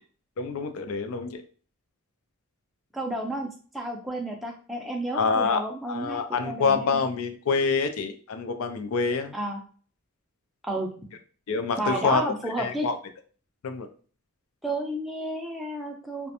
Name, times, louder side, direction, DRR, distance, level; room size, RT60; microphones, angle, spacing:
voice 1, 0.4-1.4 5.1-5.6 5.9-9.3 11.5-12.2 12.6-13.0 13.6-13.9, left 5 dB, 75° left, 7 dB, 0.4 m, -26 dB
voice 2, 2.9-7.0 9.3-9.6 10.6-10.9 11.8-12.9 14.6-16.3, right 1 dB, ahead, 0 dB, 0.4 m, -31 dB
2.4 x 2.1 x 2.8 m, 0.42 s
head